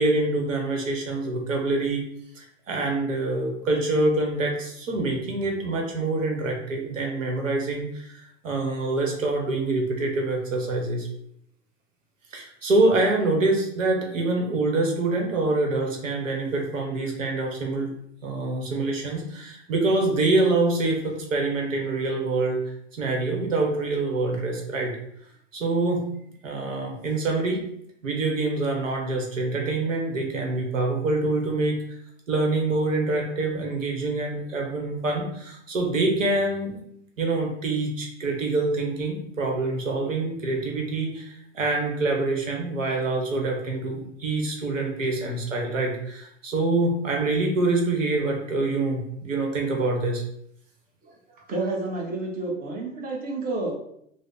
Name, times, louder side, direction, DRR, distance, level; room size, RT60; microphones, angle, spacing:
voice 1, 0.0-2.0 2.3-11.1 12.3-17.9 18.2-22.6 22.9-24.9 25.5-26.0 26.4-27.6 28.0-32.0 32.3-36.8 37.2-50.2, right 2 dB, 85° right, 1 dB, 0.9 m, -25 dB
voice 2, 51.0-53.7, right 2 dB, 25° right, -2 dB, 0.9 m, -30 dB
3.3 x 2.1 x 3.8 m, 0.73 s
hypercardioid pair, 95°, 38 cm